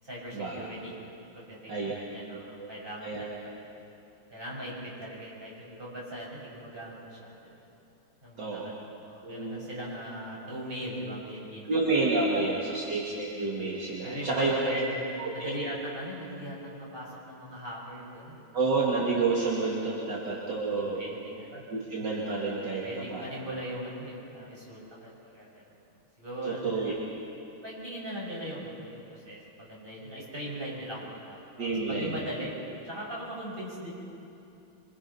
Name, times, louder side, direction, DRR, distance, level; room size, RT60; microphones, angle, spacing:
voice 1, 0.0-0.9 1.3-3.7 4.3-7.6 8.2-11.7 12.7-12.8 14.0-18.4 20.0-20.3 20.7-21.6 22.8-25.6 26.2-27.0 27.6-32.5 32.8-33.9, equal, 25° right, -5 dB, 6.7 m, -40 dB
voice 2, 8.4-8.7 9.2-9.6 11.6-14.8 15.2-15.5 18.5-21.0 21.7-22.8 23.1-23.3 26.4-26.9 31.6-32.1, right 3 dB, 55° right, -5 dB, 3.0 m, -29 dB
27.0 x 25.0 x 5.7 m, 2.7 s
omnidirectional pair, 2.3 m